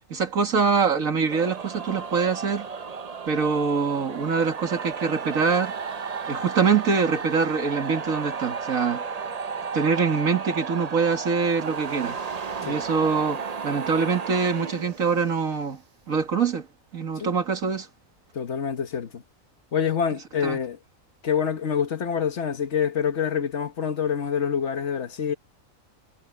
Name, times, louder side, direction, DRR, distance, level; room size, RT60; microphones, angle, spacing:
voice 1, 0.1-2.7 3.3-5.7 6.3-9.0 9.7-12.2 12.6-15.8 16.1-16.7 16.9-17.9 20.4-20.6, right 5 dB, 80° right, 2.4 m, -24 dB
sound 1, 1.3-15.5, right 5 dB, 35° right, 0.7 m, -33 dB
voice 2, 18.3-19.2 19.7-20.8 21.2-25.3, left 7 dB, 60° left, 1.4 m, -26 dB
omnidirectional pair, 1.4 m